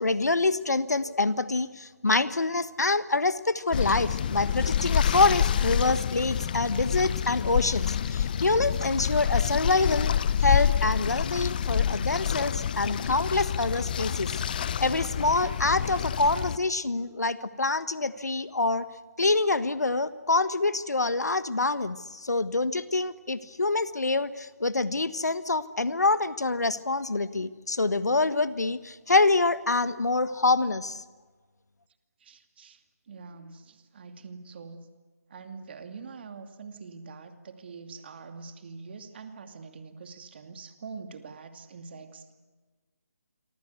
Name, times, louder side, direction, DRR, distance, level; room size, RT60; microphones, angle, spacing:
voice 1, 0.0-10.1 10.4-14.3 14.8-18.9 19.2-31.0, left 3 dB, 80° left, 14 dB, 1.4 m, -26 dB
sound 1, 3.7-16.6, left 8 dB, 30° left, 0.8 m, -27 dB
voice 2, 32.2-32.8 33.1-34.9 35.3-42.3, right 4 dB, 40° right, 7 dB, 2.5 m, -44 dB
28.0 x 24.0 x 8.2 m, 1.3 s
figure-of-eight pair, 155°, 9 cm